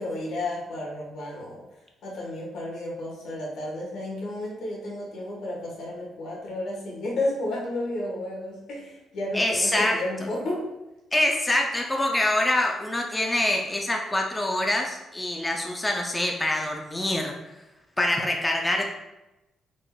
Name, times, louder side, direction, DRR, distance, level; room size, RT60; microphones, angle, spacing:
voice 1, 0.0-1.6 2.0-10.6, left 1 dB, 75° left, -3 dB, 1.4 m, -32 dB
voice 2, 9.3-9.9 10.2-10.3 11.1-17.3 18.0-18.9, left 1 dB, 15° left, 1 dB, 0.5 m, -25 dB
3.9 x 3.6 x 2.3 m, 0.98 s
cardioid pair, 90°, 0 cm